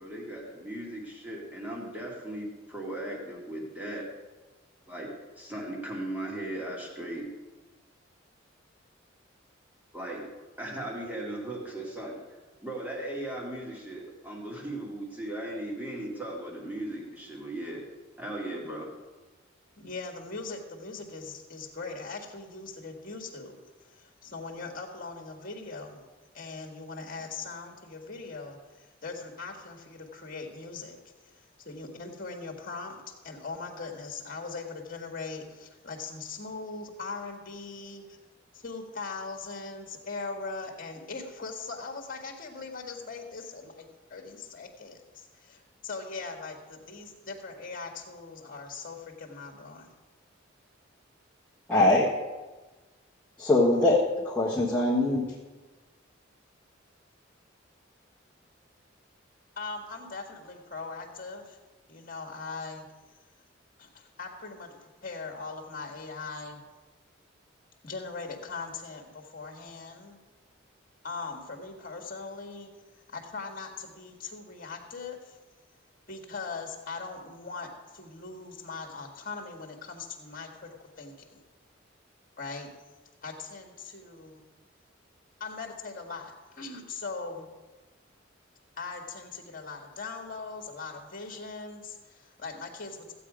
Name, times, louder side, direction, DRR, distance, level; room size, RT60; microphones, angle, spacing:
voice 1, 0.0-4.1 4.9-7.3 9.9-10.3 10.6-17.8 18.2-18.9, right 1 dB, 10° right, -2 dB, 2.3 m, -37 dB
voice 2, 19.8-26.0 26.3-38.2 38.5-49.9 59.6-61.6 61.9-62.9 63.8-66.6 67.8-70.2 71.0-72.7 73.1-75.4 76.1-81.4 82.4-82.7 83.2-84.4 85.4-87.5 88.8-93.1, left 4 dB, 45° left, 3 dB, 1.8 m, -40 dB
voice 3, 51.7-52.1 53.4-55.3, left 2 dB, 10° left, -7 dB, 1.3 m, -23 dB
14.5 x 8.4 x 5.0 m, 1.2 s
head